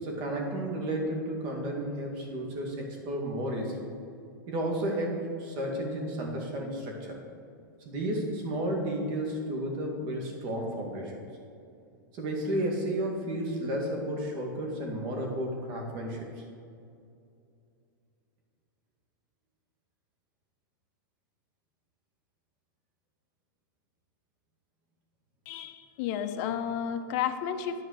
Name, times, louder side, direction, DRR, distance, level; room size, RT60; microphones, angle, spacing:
voice 1, 0.0-3.8 4.5-7.2 7.9-11.2 12.1-16.3, right 1 dB, 40° right, 0 dB, 2.1 m, -32 dB
voice 2, 25.5-27.8, left 9 dB, 45° left, 8 dB, 0.7 m, -32 dB
10.5 x 4.8 x 6.6 m, 2.5 s
supercardioid pair, 145°, 11 cm